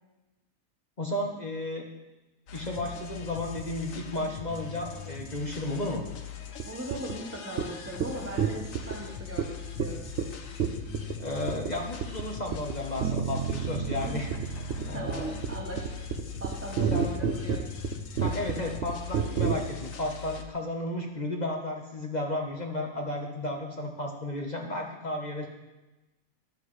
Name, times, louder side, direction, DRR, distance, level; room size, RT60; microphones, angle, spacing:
voice 1, 1.0-1.9 2.5-6.0 11.2-14.3 14.9-15.3 16.9-17.1 18.2-25.5, left 1 dB, 35° left, 1 dB, 1.2 m, -33 dB
sound 1, 2.5-20.4, left 7 dB, 80° left, 1.3 m, -41 dB
sound 2, 6.6-6.7 6.9-7.1 7.6-7.7 8.0-8.1 8.4-9.0 9.4-9.5 9.8-9.9 10.2-10.3 10.6-11.1 11.5-11.7 12.0-12.2 12.5-12.8 13.0-13.2 13.5-19.5, right 7 dB, 60° right, 1.0 m, -29 dB
voice 2, 6.7-10.1 14.4-14.5 14.9-16.0 16.4-17.6, equal, 10° right, -2 dB, 1.1 m, -39 dB
sound 3, 13.0-17.1, right 8 dB, 80° right, 1.1 m, -36 dB
13.0 x 12.0 x 3.2 m, 1.1 s
omnidirectional pair, 1.3 m